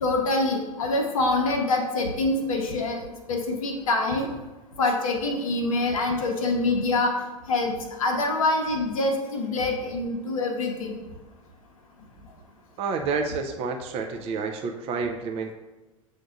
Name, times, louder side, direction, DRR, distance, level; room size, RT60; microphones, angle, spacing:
voice 1, 0.0-3.0 3.3-4.3 4.8-7.1 7.5-11.0, left 2 dB, 70° left, 2 dB, 0.7 m, -25 dB
voice 2, 12.8-15.5, right 4 dB, 35° right, 4 dB, 0.4 m, -29 dB
7.7 x 2.6 x 2.4 m, 1.1 s
figure-of-eight pair, 85°, 18 cm